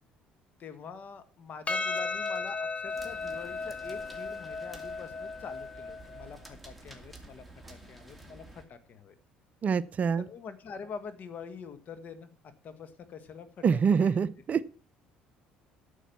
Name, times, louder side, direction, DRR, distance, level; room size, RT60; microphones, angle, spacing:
voice 1, 0.6-9.2 10.2-12.3 12.6-14.2, left 6 dB, 50° left, 11 dB, 1.6 m, -45 dB
Percussion, 1.7-6.3, left 4 dB, 35° left, 1.2 m, -35 dB
sound 1, 1.8-8.7, right 2 dB, ahead, 2.4 m, -51 dB
voice 2, 9.6-10.3 13.6-14.7, right 6 dB, 45° right, 17 dB, 0.5 m, -26 dB
9.1 x 7.1 x 7.0 m, 0.42 s
supercardioid pair, 75°, 4 cm